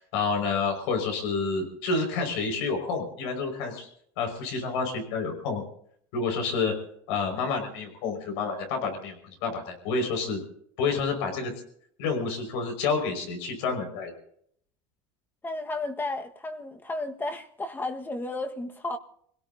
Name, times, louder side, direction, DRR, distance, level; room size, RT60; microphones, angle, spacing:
voice 1, 0.0-3.9 4.2-5.6 6.1-6.7 7.1-10.4 10.8-11.5 12.0-14.1, left 4 dB, 85° left, 5.7 m, -29 dB
voice 2, 15.4-19.0, left 2 dB, 15° left, 1.6 m, -33 dB
28.0 x 17.5 x 2.8 m
cardioid pair, 130°, 13 cm